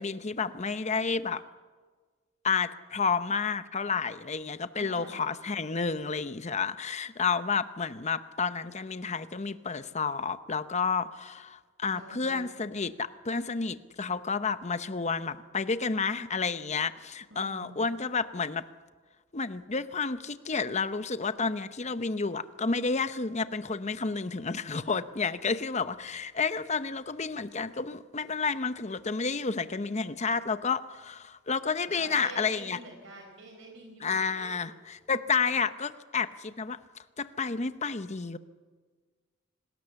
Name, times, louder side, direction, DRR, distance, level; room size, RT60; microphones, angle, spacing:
voice 1, 0.0-1.4 2.4-18.7 19.3-32.8 34.0-36.8 37.2-38.4, left 5 dB, 35° left, 12 dB, 0.8 m, -30 dB
voice 2, 4.7-5.3 11.9-12.5 17.3-17.8 31.9-34.5, right 1 dB, 65° right, 1 dB, 4.4 m, -46 dB
27.0 x 19.5 x 7.0 m, 1.4 s
head